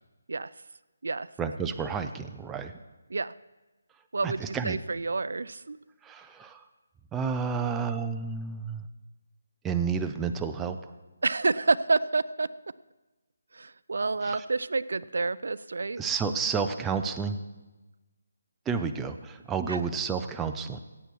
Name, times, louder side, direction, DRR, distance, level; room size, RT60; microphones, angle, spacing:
voice 1, 1.4-2.7 4.2-4.8 6.0-6.6 7.1-8.9 9.6-10.8 14.2-14.4 16.0-17.4 18.7-20.8, right 5 dB, 5° right, 6 dB, 0.4 m, -30 dB
voice 2, 4.1-5.8 11.2-12.5 13.5-16.1 19.7-19.8, right 3 dB, 75° right, 18 dB, 0.4 m, -29 dB
17.0 x 8.2 x 4.6 m, 1.1 s
hypercardioid pair, 170°, 0 cm